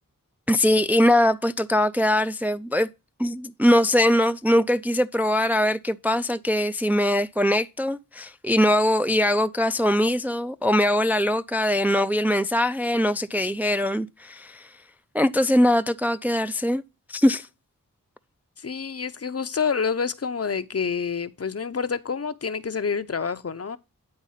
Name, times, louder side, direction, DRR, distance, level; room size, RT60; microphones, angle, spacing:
voice 1, 0.5-2.9 3.2-14.7 15.1-16.8 17.1-17.5, left 1 dB, 5° right, 0.4 m, -22 dB
voice 2, 18.6-23.8, left 6 dB, 45° left, 0.6 m, -28 dB
9.7 x 4.1 x 5.5 m
wide cardioid pair, 90°, 33 cm